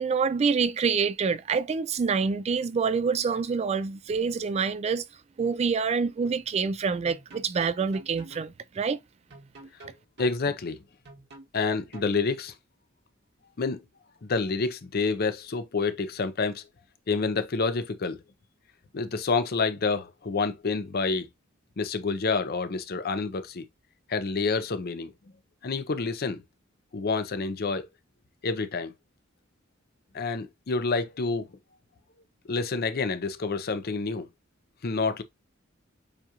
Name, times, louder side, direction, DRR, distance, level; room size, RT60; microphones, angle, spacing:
voice 1, 0.0-5.0 5.4-9.0, right 5 dB, 30° right, 0.3 m, -26 dB
sound 1, 6.2-6.4 7.1-8.5 9.3-10.4 11.1-12.1, right 2 dB, 60° right, 1.6 m, -47 dB
voice 2, 10.2-10.8 11.5-12.5 13.6-13.8 14.2-16.6 17.1-18.2 18.9-21.3 21.8-23.7 24.1-25.1 25.6-26.4 26.9-27.9 28.4-28.9 30.1-31.5 32.4-34.3 34.8-35.2, left 4 dB, 50° left, 0.6 m, -28 dB
7.3 x 2.4 x 2.8 m
head